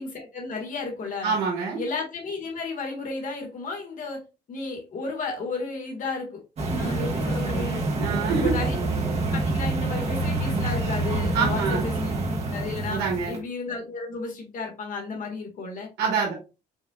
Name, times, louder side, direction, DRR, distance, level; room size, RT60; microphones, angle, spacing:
voice 1, 0.0-1.4 1.8-4.2 4.5-6.4 6.8-7.8 8.3-8.7 9.0-12.1 12.5-15.9, left 3 dB, 50° left, 1 dB, 1.8 m, -33 dB
voice 2, 1.2-1.8 8.0-8.5 11.3-11.8 12.9-13.4 16.0-16.3, right 5 dB, 80° right, -2 dB, 1.7 m, -25 dB
sound 1, 6.6-13.4, right 2 dB, 40° right, 1.7 m, -27 dB
5.3 x 3.4 x 2.4 m, 0.30 s
cardioid pair, 110°, 17 cm